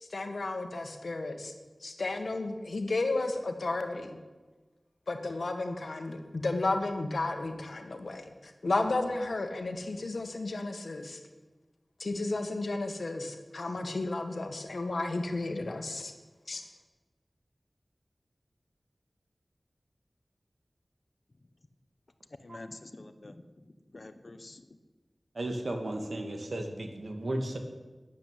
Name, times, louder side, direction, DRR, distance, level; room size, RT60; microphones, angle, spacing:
voice 1, 0.0-1.5 1.8-4.2 5.1-11.2 12.0-16.1 16.5-16.7, left 2 dB, 85° left, 6 dB, 1.7 m, -33 dB
voice 2, 22.4-24.8, left 2 dB, 60° left, 10 dB, 1.3 m, -48 dB
voice 3, 25.3-27.6, right 1 dB, 75° right, 5 dB, 2.3 m, -34 dB
12.5 x 10.5 x 9.2 m, 1.2 s
wide cardioid pair, 50°, 0 cm